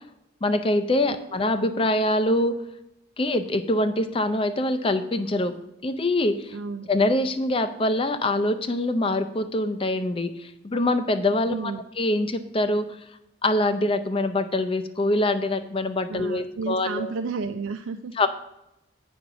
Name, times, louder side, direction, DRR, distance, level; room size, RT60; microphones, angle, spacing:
voice 1, 0.4-2.5 3.2-5.5 5.8-6.6 6.9-13.0 13.4-17.1 18.2-18.3, left 1 dB, 25° left, 9 dB, 0.5 m, -24 dB
voice 2, 6.5-6.9 11.5-11.8 16.1-18.1, right 4 dB, 80° right, 8 dB, 0.4 m, -32 dB
8.3 x 5.1 x 5.8 m, 0.86 s
head